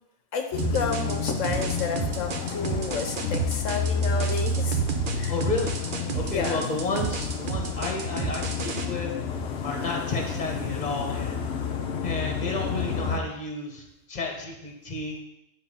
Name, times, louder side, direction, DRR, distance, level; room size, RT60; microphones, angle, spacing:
voice 1, 0.3-4.8 5.2-5.3 6.2-6.7, left 5 dB, 85° left, 5 dB, 1.1 m, -31 dB
sound 1, 0.5-13.2, left 4 dB, 60° left, 1.0 m, -30 dB
sound 2, 0.6-8.8, right 6 dB, 50° right, 0.9 m, -32 dB
voice 2, 5.3-5.7 6.1-9.1 9.6-11.4 12.0-15.2, left 3 dB, 35° left, 1 dB, 1.5 m, -31 dB
9.3 x 3.9 x 5.6 m, 0.84 s
omnidirectional pair, 1.3 m